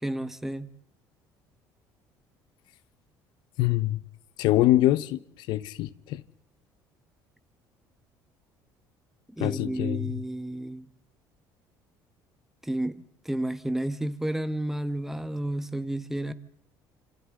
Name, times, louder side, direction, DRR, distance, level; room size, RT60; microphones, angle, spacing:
voice 1, 0.0-0.7 9.4-10.9 12.6-16.3, right 1 dB, 5° right, 1.1 m, -31 dB
voice 2, 3.6-4.0 4.4-6.2 9.4-10.2, left 15 dB, 75° left, 0.7 m, -24 dB
27.5 x 26.0 x 3.8 m
cardioid pair, 100°, 8 cm